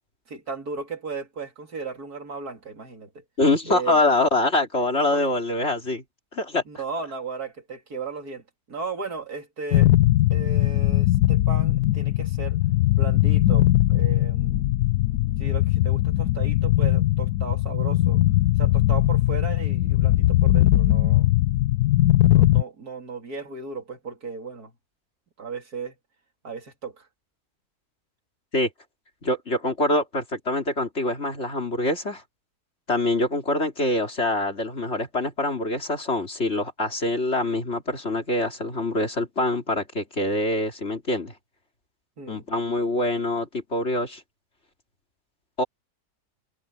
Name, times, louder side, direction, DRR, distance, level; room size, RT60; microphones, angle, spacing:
voice 1, 0.3-3.2 3.7-4.0 5.1-5.2 6.7-9.9 10.3-12.6 12.9-14.7 15.4-18.2 18.6-21.3 22.3-24.7 25.4-26.0 26.4-27.1 42.2-42.5, right 4 dB, 80° right, 3.5 m, -35 dB
voice 2, 3.4-6.0 6.3-6.6 28.5-28.7 29.2-32.2 32.9-41.3 42.3-44.2 45.6-45.7, left 2 dB, 45° left, 3.6 m, -25 dB
sound 1, 9.7-22.6, left 15 dB, 85° left, 1.2 m, -20 dB
omnidirectional pair, 1.6 m